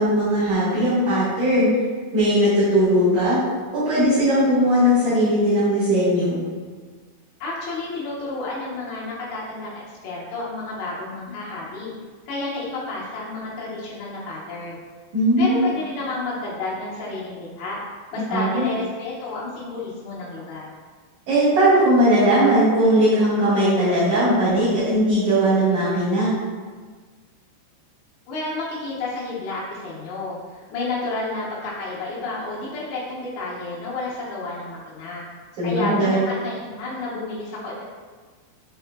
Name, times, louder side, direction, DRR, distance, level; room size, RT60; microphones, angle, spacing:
voice 1, 0.0-1.7 2.1-3.4 3.7-6.4 15.1-15.6 18.3-18.7 21.3-26.3 35.6-36.2, equal, 60° right, -13 dB, 2.2 m, -19 dB
voice 2, 7.4-11.9 12.3-14.8 15.4-17.8 18.1-20.7 28.3-35.2 35.6-37.8, left 3 dB, 75° left, -6 dB, 2.9 m, -31 dB
6.5 x 3.6 x 2.2 m, 1.5 s
omnidirectional pair, 5.2 m